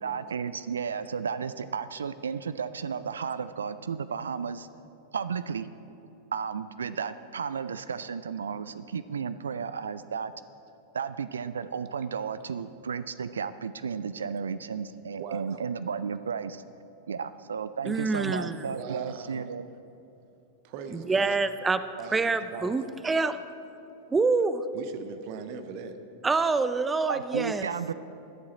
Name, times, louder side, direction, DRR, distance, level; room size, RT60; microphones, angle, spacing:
voice 1, 0.0-4.7 5.1-5.7 6.3-10.3 10.9-16.6 17.1-19.7 27.1-27.9, right 6 dB, 70° right, 14 dB, 0.3 m, -33 dB
voice 2, 15.2-15.6 18.7-19.5 20.6-21.4 22.0-22.8 24.7-26.0, right 6 dB, 45° right, 9 dB, 0.9 m, -40 dB
voice 3, 17.8-18.6 20.9-21.8 22.1-23.4 24.1-24.6 26.2-27.7, right 4 dB, 15° right, 12 dB, 0.5 m, -26 dB
21.5 x 7.6 x 4.1 m, 2.9 s
figure-of-eight pair, 90°, 0 cm